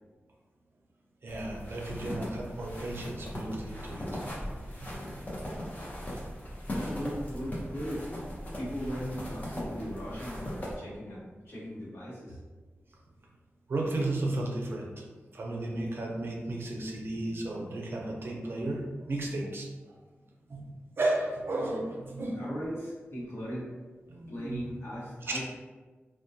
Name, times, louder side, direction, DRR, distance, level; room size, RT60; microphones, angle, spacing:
voice 1, 1.2-4.1 4.8-4.9 13.7-15.1 15.3-20.0 20.5-20.6 21.0-22.4 24.1-24.6 25.2-25.4, right 2 dB, 55° right, -1 dB, 0.4 m, -34 dB
sound 1, 1.3-10.8, equal, 35° left, 0.6 m, -39 dB
voice 2, 6.6-8.0 8.5-12.4 22.1-23.7 24.3-25.5, equal, 65° left, -8 dB, 1.0 m, -38 dB
2.2 x 2.2 x 2.6 m, 1.3 s
wide cardioid pair, 110°, 5 cm